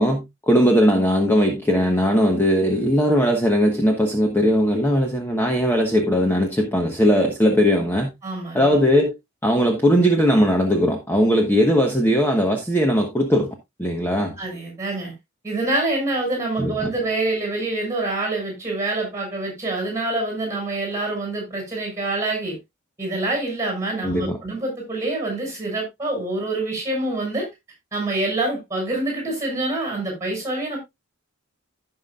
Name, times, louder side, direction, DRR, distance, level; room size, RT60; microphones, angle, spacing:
voice 1, 0.0-8.1 8.5-9.1 9.4-14.4 16.6-16.9 24.0-24.4, equal, 10° left, 1.2 m, -19 dB
voice 2, 8.2-8.8 14.4-15.1 15.4-22.6 23.0-27.5 27.9-30.8, right 2 dB, 15° right, 5.9 m, -26 dB
16.0 x 5.9 x 2.4 m
head